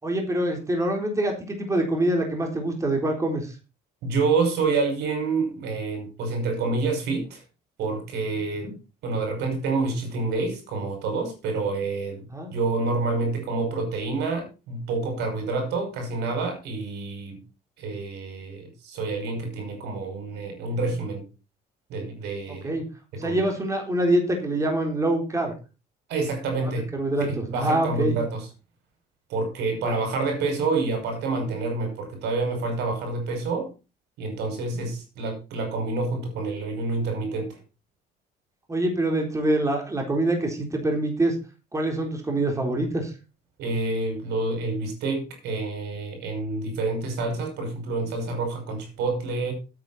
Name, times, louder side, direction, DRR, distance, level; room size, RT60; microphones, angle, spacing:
voice 1, 0.0-3.6 8.6-8.7 12.3-12.5 22.6-22.8 23.1-25.5 26.6-28.2 29.8-30.0 34.7-34.9 38.7-41.4 41.7-43.1, right 1 dB, 20° right, 2 dB, 4.0 m, -25 dB
voice 2, 4.0-7.4 7.8-8.7 9.0-12.2 12.5-17.4 17.8-21.2 21.9-22.8 23.1-23.4 26.1-26.9 27.3-28.4 29.3-33.7 34.2-37.6 43.6-49.5, right 3 dB, 85° right, 5 dB, 6.0 m, -28 dB
13.0 x 8.8 x 4.3 m, 0.31 s
cardioid pair, 110°, 17 cm